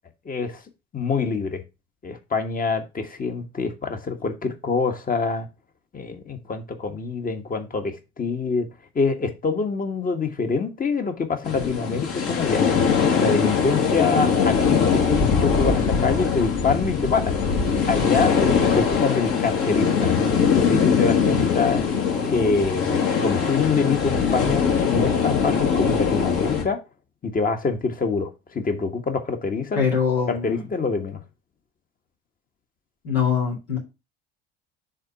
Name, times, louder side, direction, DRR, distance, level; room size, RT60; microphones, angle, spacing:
voice 1, 0.2-0.6 0.9-1.6 2.0-5.5 5.9-8.7 8.9-12.6 13.2-17.4 17.8-20.1 20.5-21.8 22.2-26.8 27.2-29.9 30.3-31.2, left 4 dB, 30° left, 1.4 m, -25 dB
sound 1, 11.4-26.6, left 6 dB, 50° left, 2.0 m, -21 dB
voice 2, 29.7-30.6 33.0-33.8, left 6 dB, 70° left, 2.2 m, -23 dB
6.5 x 3.7 x 5.5 m
figure-of-eight pair, 60°, 31 cm